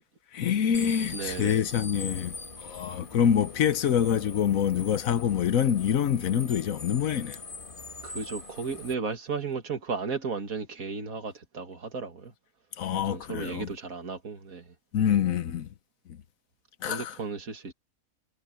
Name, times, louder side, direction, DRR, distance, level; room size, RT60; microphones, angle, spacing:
voice 1, 0.3-7.4 12.8-13.7 14.9-15.7 16.1-16.2 16.8-17.2, left 9 dB, 70° left, 1.3 m, -26 dB
sound 1, 0.7-8.9, left 3 dB, 35° left, 2.3 m, -42 dB
voice 2, 1.1-1.6 8.0-12.3 12.9-14.6 16.9-17.7, right 5 dB, 75° right, 2.5 m, -34 dB
omnidirectional pair, 1.5 m